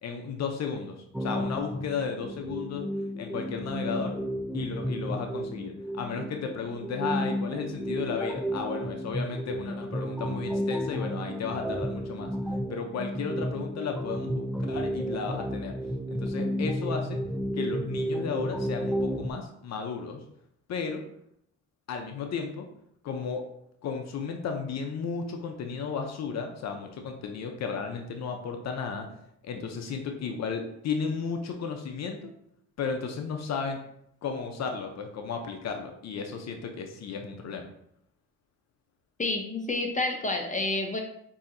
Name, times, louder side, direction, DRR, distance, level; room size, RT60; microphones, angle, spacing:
voice 1, 0.0-4.2 4.5-12.3 12.7-15.8 16.1-17.2 17.5-20.2 20.7-21.0 21.9-22.7 23.0-23.4 23.8-29.1 29.4-32.3 32.8-33.8 34.2-37.6, left 5 dB, 60° left, 4 dB, 0.6 m, -34 dB
sound 1, 1.1-19.3, equal, 5° right, 0.3 m, -32 dB
voice 2, 39.2-41.0, left 2 dB, 25° left, 2 dB, 0.7 m, -29 dB
6.8 x 2.8 x 2.6 m, 0.73 s
cardioid pair, 90°, 30 cm